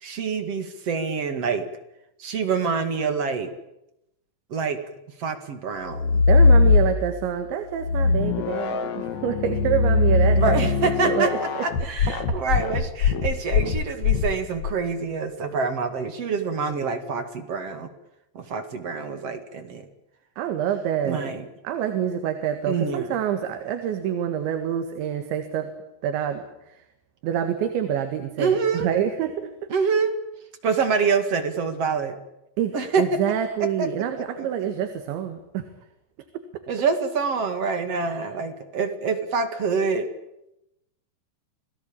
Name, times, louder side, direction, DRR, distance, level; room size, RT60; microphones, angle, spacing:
voice 1, 0.0-1.7 2.2-3.5 4.5-4.8 5.2-6.2 10.4-11.3 11.6-17.9 18.3-19.9 21.0-21.4 22.6-23.1 28.4-28.9 29.7-30.1 30.6-32.2 32.7-33.2 33.6-33.9 34.4-34.7 36.7-40.1, right 5 dB, 45° right, 8 dB, 2.3 m, -26 dB
sound 1, 5.9-7.3 7.8-14.7, left 4 dB, 55° left, 2.3 m, -21 dB
voice 2, 6.3-10.6 11.0-11.6 20.4-21.3 21.6-25.7 26.0-26.8 27.2-29.5 32.6-35.6, right 9 dB, 80° right, 7 dB, 4.1 m, -27 dB
29.0 x 18.5 x 8.8 m, 0.86 s
omnidirectional pair, 5.2 m